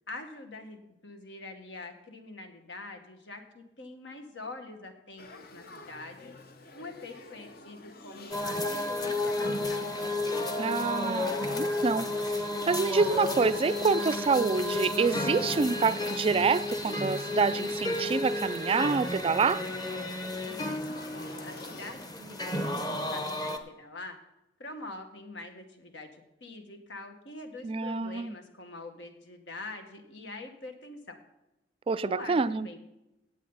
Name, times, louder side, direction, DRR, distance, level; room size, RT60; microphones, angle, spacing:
voice 1, 0.1-6.3 6.7-9.8 20.4-24.2 24.6-31.2 32.0-32.8, left 2 dB, 80° left, 1.7 m, -45 dB
Male speech man speaking / Child speech kid speaking / Conversation, 5.2-21.9, left 2 dB, 55° left, 1.0 m, -48 dB
sound 1, 8.3-23.6, left 2 dB, 20° left, 1.0 m, -32 dB
voice 2, 10.6-12.1 12.7-19.6 27.6-28.3 31.9-32.7, right 4 dB, 30° right, 0.3 m, -27 dB
17.0 x 8.4 x 4.0 m
head